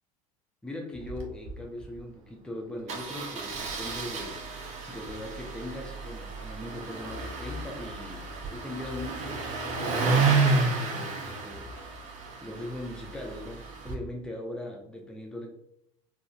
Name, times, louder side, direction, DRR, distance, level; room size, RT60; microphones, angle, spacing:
voice 1, 0.6-4.4 4.9-9.5 9.8-11.8 12.4-15.5, left 1 dB, 5° left, 1 dB, 0.6 m, -39 dB
Engine starting, 0.9-1.2 1.5-1.6 1.8-2.0 2.9-13.9, right 4 dB, 40° right, 0.7 m, -31 dB
3.8 x 2.6 x 2.5 m, 0.74 s
figure-of-eight pair, 70°, 19 cm